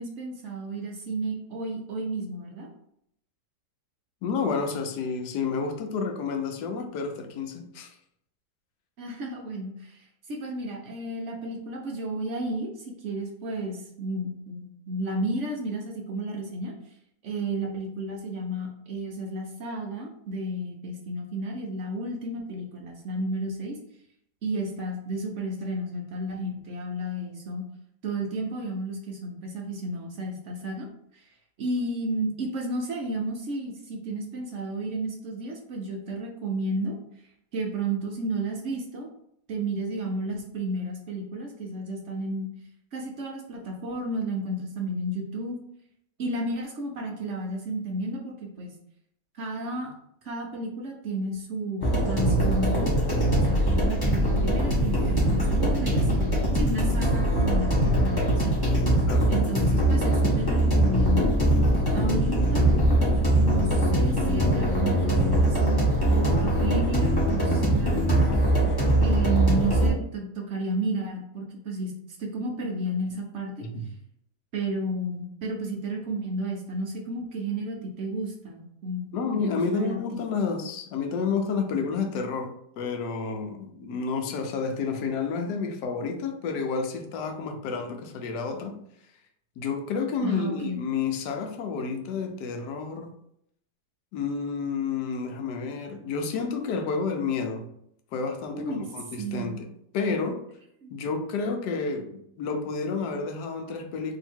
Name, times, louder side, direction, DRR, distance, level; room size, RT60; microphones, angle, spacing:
voice 1, 0.0-2.7 9.0-16.7 17.2-23.8 24.4-27.6 28.0-30.9 31.1-31.3 31.6-37.0 37.5-39.1 39.5-42.5 42.9-45.6 46.2-48.7 49.3-49.9 50.2-52.9 53.4-56.1 56.5-58.6 59.3-61.3 61.9-62.8 63.3-68.3 69.0-71.9 72.2-73.7 74.5-79.1 79.4-80.2 90.2-90.7 98.5-98.9 99.2-99.6 100.8-101.0, right 1 dB, 65° right, 0 dB, 0.7 m, -32 dB
voice 2, 4.2-8.0 59.0-59.3 73.6-73.9 79.1-88.8 89.6-93.1 94.1-97.7 98.1-99.7 99.9-100.4 100.9-104.2, left 5 dB, 75° left, 4 dB, 1.1 m, -30 dB
sound 1, 51.8-69.9, right 1 dB, 20° left, 0.7 m, -22 dB
2.8 x 2.7 x 4.3 m, 0.73 s
omnidirectional pair, 1.9 m